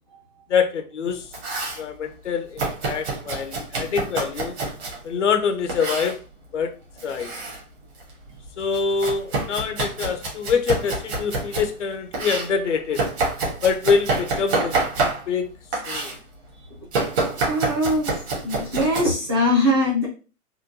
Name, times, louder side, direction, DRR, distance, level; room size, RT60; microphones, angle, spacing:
voice 1, 0.5-1.3 1.8-4.6 5.0-6.2 6.5-6.7 7.0-7.3 8.6-13.0 13.6-14.8 15.3-15.5 15.9-16.1, left 6 dB, 50° left, 7 dB, 0.5 m, -25 dB
Domestic sounds home sounds, 1.1-1.8 2.6-5.0 5.7-6.2 7.0-7.6 8.0-11.7 12.1-15.4 15.7-16.2 16.9-19.0, right 3 dB, 45° right, 1.3 m, -27 dB
voice 2, 17.4-18.1 18.4-20.1, left 1 dB, 15° right, -5 dB, 0.5 m, -21 dB
3.6 x 2.2 x 2.7 m, 0.33 s
hypercardioid pair, 135°, 46 cm